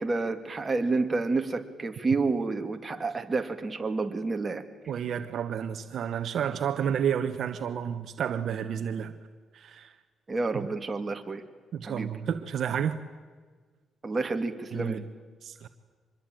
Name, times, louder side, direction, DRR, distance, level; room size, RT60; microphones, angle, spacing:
voice 1, 0.0-4.6 10.3-11.4 11.8-12.1 14.0-15.0, right 3 dB, 25° right, 5 dB, 2.4 m, -29 dB
voice 2, 4.9-9.1 9.5-9.9 11.7-13.0 14.7-15.0 15.4-15.7, right 8 dB, 65° right, 9 dB, 1.2 m, -30 dB
25.0 x 21.0 x 9.2 m, 1.5 s
cardioid pair, 90°, 0 cm